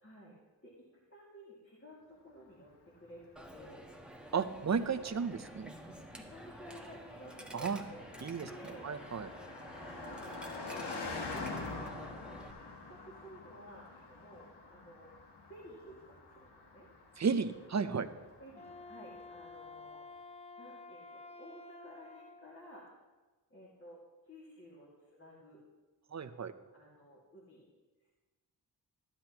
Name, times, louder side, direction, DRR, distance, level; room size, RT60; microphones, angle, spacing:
voice 1, 0.0-0.4 0.6-0.8 1.1-3.9 6.3-8.0 8.4-8.9 9.9-10.4 10.7-11.0 11.3-12.4 12.9-15.1 15.4-16.9 18.4-20.1 20.6-22.9 23.5-25.6 26.7-27.7, equal, 30° left, -5 dB, 2.3 m, -54 dB
Car passing by, 2.9-19.4, left 3 dB, 70° left, 1.5 m, -47 dB
Coin (dropping), 3.4-12.5, right 1 dB, ahead, 1.2 m, -50 dB
voice 2, 4.3-5.7 7.5-7.8 8.2-9.3 17.2-18.1 26.1-26.5, right 5 dB, 40° right, 10 dB, 0.7 m, -34 dB
Wind instrument woodwind instrument, 18.5-22.6, left 3 dB, 15° left, 0.9 m, -51 dB
14.5 x 10.0 x 3.0 m, 1.2 s
cardioid pair, 65°, 42 cm